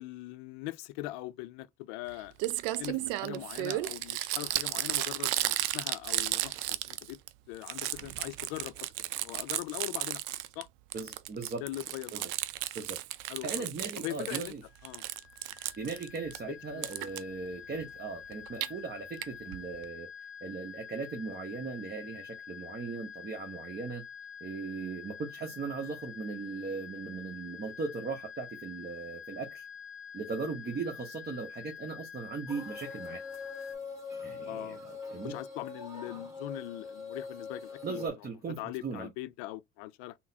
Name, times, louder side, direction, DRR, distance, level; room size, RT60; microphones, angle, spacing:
voice 1, 0.0-2.3 2.8-7.2 7.5-10.2 10.6-10.7 11.6-12.3 13.3-13.7 14.0-14.5 14.8-15.0 15.5-15.6 16.7-16.8 34.4-34.8 35.2-38.1 38.6-40.1, left 17 dB, 70° left, 0.5 m, -41 dB
Crumpling crinkling, 2.1-2.2 2.4-7.3 7.6-10.6 10.9-14.5 14.8-16.4 16.8-17.2 18.3-18.7 19.2-19.3 19.5-19.6 19.8-19.9, right 15 dB, 75° right, 0.5 m, -34 dB
voice 2, 10.9-11.6 12.1-12.3 12.7-13.0 13.4-14.6 15.8-20.1 20.4-24.0 24.4-29.7 30.1-33.2 34.2-35.3 37.8-39.1, right 4 dB, 25° right, 0.8 m, -38 dB
sound 1, 14.7-33.8, left 7 dB, 35° left, 0.7 m, -47 dB
sound 2, 32.5-38.1, left 4 dB, 10° right, 1.9 m, -42 dB
3.8 x 2.0 x 2.6 m
hypercardioid pair, 70°, 34 cm